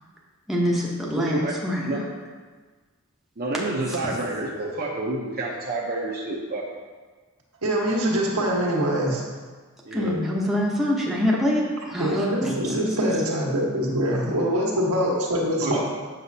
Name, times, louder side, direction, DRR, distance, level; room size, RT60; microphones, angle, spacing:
voice 1, 0.5-2.0 3.9-4.1 9.9-13.0, equal, ahead, -5 dB, 0.9 m, -25 dB
voice 2, 1.1-1.5 1.9-2.0 3.4-6.6 9.8-10.2 15.6-15.8, right 2 dB, 45° right, -3 dB, 0.8 m, -29 dB
voice 3, 7.6-9.2 12.0-15.8, equal, 90° right, -3 dB, 1.5 m, -24 dB
7.8 x 6.3 x 2.8 m, 1.4 s
head